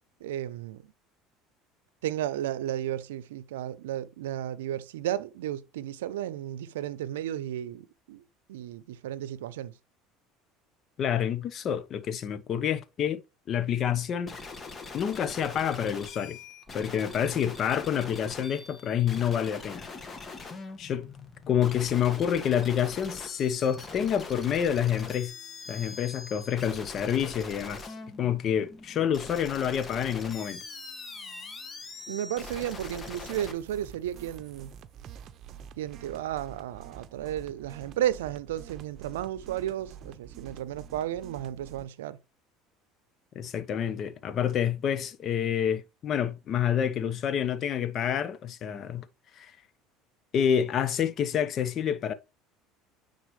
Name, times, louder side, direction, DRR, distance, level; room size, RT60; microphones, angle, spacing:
voice 1, 0.2-0.8 2.0-8.2 8.5-9.7 32.1-34.7 35.8-42.2, right 11 dB, 85° right, 0.6 m, -33 dB
voice 2, 11.0-13.2 13.5-14.4 14.9-16.4 16.7-19.9 20.8-21.1 21.5-25.3 25.7-27.9 28.2-30.6 43.3-49.1 49.4-49.5 50.3-52.1, left 9 dB, 50° left, 0.9 m, -28 dB
sound 1, 14.3-33.5, left 4 dB, 30° left, 1.5 m, -42 dB
sound 2, 32.4-41.9, right 8 dB, 50° right, 0.7 m, -47 dB
9.4 x 4.1 x 3.1 m
hypercardioid pair, 85°, 0 cm